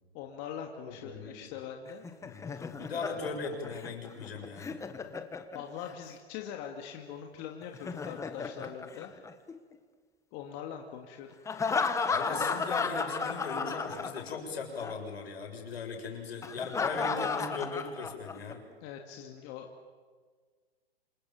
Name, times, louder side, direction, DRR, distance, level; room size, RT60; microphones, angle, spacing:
voice 1, 0.1-2.1 2.5-2.6 5.5-9.1 10.3-11.3 18.8-19.7, left 8 dB, 35° left, 3 dB, 2.4 m, -42 dB
voice 2, 0.9-1.4 2.2-2.4 2.7-4.8 12.1-18.6, left 4 dB, 70° left, 3 dB, 7.1 m, -38 dB
Laughter, 1.9-5.9 7.6-9.8 11.5-14.5 14.8-14.9 16.4-18.5, left 5 dB, 10° left, 1.4 m, -34 dB
28.0 x 27.0 x 7.3 m, 1.5 s
hypercardioid pair, 125°, 31 cm